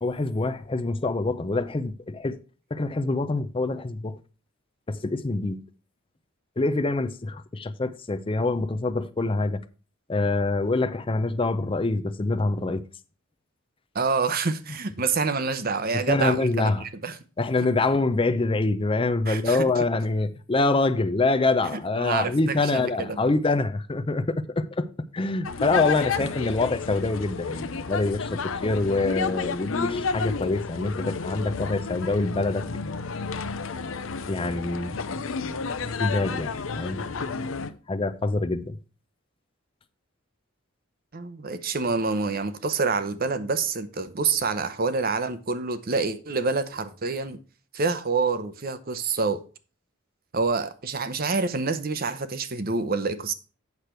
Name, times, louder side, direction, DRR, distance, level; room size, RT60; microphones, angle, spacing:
voice 1, 0.0-2.4 2.7-4.2 4.9-5.6 6.6-9.6 10.1-12.8 16.1-16.8 17.4-24.9 25.1-32.7 34.3-35.0 36.0-37.0 37.9-38.8, left 3 dB, 25° left, 0.5 m, -25 dB
voice 2, 13.9-17.2 19.3-19.8 22.0-23.3 41.1-47.4 47.7-49.4 50.3-53.3, right 4 dB, 45° right, 0.8 m, -27 dB
sound 1, 25.4-37.7, left 5 dB, 70° left, 0.7 m, -31 dB
8.3 x 6.6 x 4.3 m
head